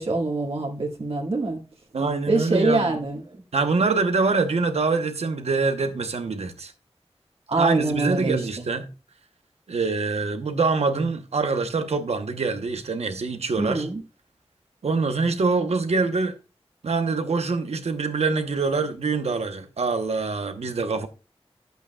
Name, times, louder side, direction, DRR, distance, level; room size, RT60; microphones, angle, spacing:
voice 1, 0.0-1.6 2.3-3.2 7.5-8.4 13.6-14.0, right 2 dB, 65° right, 2.0 m, -24 dB
voice 2, 1.9-2.9 3.5-6.7 7.6-8.9 9.7-13.9 14.8-16.4 16.8-21.1, right 4 dB, 85° right, 1.0 m, -25 dB
11.0 x 8.1 x 2.4 m
wide cardioid pair, 65°, 11 cm